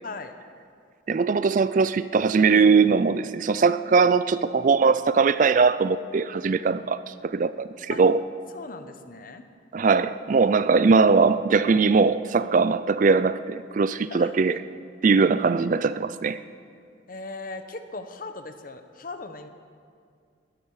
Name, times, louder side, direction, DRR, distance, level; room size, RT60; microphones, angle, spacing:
voice 1, 0.0-0.3 7.9-8.0 8.5-9.5 14.1-14.6 17.1-19.5, left 3 dB, 45° left, 0.9 m, -38 dB
voice 2, 1.1-8.2 9.7-14.6 15.0-16.4, right 4 dB, 40° right, 0.4 m, -21 dB
19.5 x 13.0 x 4.8 m
head